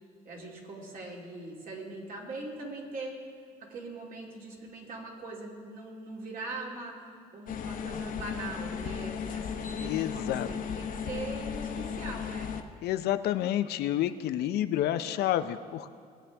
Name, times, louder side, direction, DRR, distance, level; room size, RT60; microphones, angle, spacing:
voice 1, 0.2-3.2 3.6-12.6, right 2 dB, 55° right, -2 dB, 2.6 m, -41 dB
sound 1, 7.5-12.6, left 7 dB, 55° left, 0.9 m, -35 dB
voice 2, 9.8-10.5 12.8-15.9, left 12 dB, 75° left, 11 dB, 0.6 m, -29 dB
19.5 x 8.6 x 3.4 m, 2.2 s
cardioid pair, 110°, 17 cm